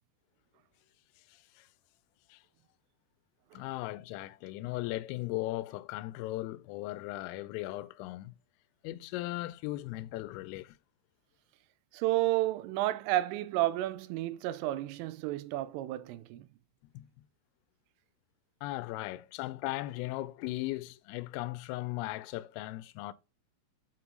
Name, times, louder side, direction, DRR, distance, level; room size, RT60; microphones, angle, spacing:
voice 1, 1.3-1.7 2.3-2.4 3.5-8.3 8.8-10.8 16.8-17.1 18.6-23.1, left 17 dB, 90° left, 3.2 m, -37 dB
voice 2, 11.9-16.5, right 15 dB, 85° right, 3.1 m, -31 dB
8.0 x 4.3 x 3.9 m
omnidirectional pair, 5.7 m